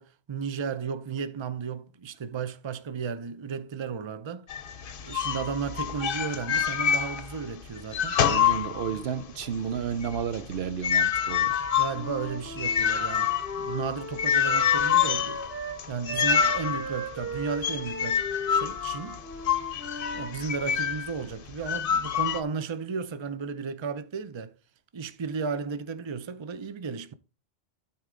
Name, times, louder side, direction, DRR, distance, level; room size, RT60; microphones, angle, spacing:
voice 1, 0.0-4.5 5.0-8.2 11.7-13.3 13.6-15.4 15.9-18.2 18.5-19.2 20.1-24.5 24.9-27.1, right 5 dB, 35° right, 0.6 m, -34 dB
sound 1, 4.5-7.5 7.8-9.2 9.6-21.1 21.6-22.4, left 8 dB, 60° left, 0.9 m, -27 dB
voice 2, 8.2-11.6, right 8 dB, 75° right, 0.9 m, -32 dB
Wind instrument woodwind instrument, 11.9-15.8 16.0-20.4, right 1 dB, 10° right, 2.1 m, -37 dB
12.0 x 4.4 x 3.7 m
omnidirectional pair, 1.1 m